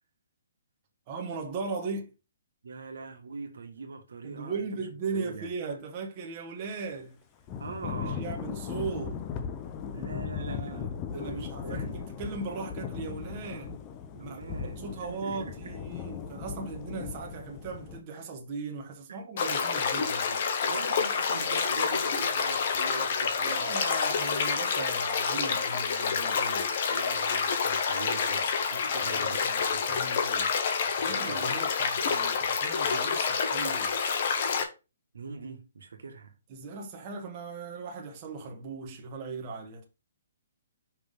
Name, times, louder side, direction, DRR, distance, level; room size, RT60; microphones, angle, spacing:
voice 1, 1.1-2.1 4.2-7.2 8.0-9.2 10.3-13.7 14.2-20.4 23.4-26.7 28.9-30.5 31.0-33.9 36.5-39.9, right 4 dB, 30° right, 1.3 m, -38 dB
voice 2, 2.6-4.8 5.1-5.5 7.6-8.2 9.9-12.1 14.1-15.8 19.1-19.2 20.7-23.7 26.6-30.0 31.1-31.5 35.1-36.3, right 4 dB, 85° right, 1.6 m, -42 dB
Thunder / Rain, 7.5-18.0, left 7 dB, 20° left, 0.6 m, -38 dB
sound 1, 19.4-34.6, left 6 dB, 45° left, 1.2 m, -28 dB
5.8 x 3.4 x 5.2 m
hypercardioid pair, 165°, 0 cm